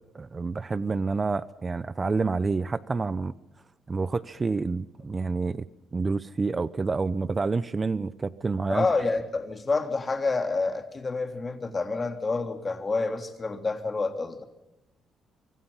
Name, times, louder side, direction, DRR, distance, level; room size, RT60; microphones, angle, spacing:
voice 1, 0.1-3.3 3.9-5.6 5.9-8.9, right 4 dB, 30° right, 17 dB, 0.8 m, -28 dB
voice 2, 8.7-14.5, left 3 dB, 30° left, 7 dB, 3.4 m, -28 dB
25.0 x 24.0 x 5.7 m, 0.94 s
cardioid pair, 90°, 0 cm